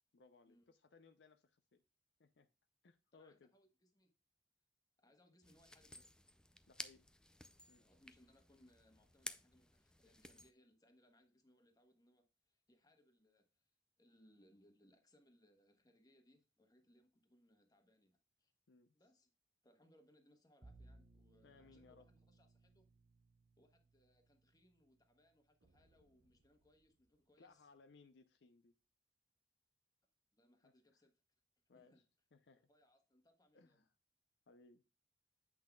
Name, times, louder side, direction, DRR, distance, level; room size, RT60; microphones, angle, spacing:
voice 1, 0.1-1.8 2.2-2.5 2.8-3.5 6.7-7.1 7.7-7.9 18.7-19.0 21.4-22.1 27.4-28.7 30.6-30.7 31.7-32.0 32.3-32.7 33.5-33.9 34.5-34.8, left 4 dB, 65° left, 0.5 m, -65 dB
voice 2, 3.1-4.1 5.0-6.1 7.8-18.5 18.9-19.3 19.6-22.9 23.6-27.7 30.3-31.1 31.7-32.0 32.6-33.8, left 1 dB, 20° left, 1.3 m, -72 dB
sound 1, 5.4-10.5, left 1 dB, 5° left, 0.4 m, -54 dB
Bowed string instrument, 20.6-25.7, right 2 dB, 25° right, 0.7 m, -66 dB
sound 2, 25.6-28.2, right 2 dB, 90° right, 0.8 m, -79 dB
8.4 x 6.0 x 2.3 m
head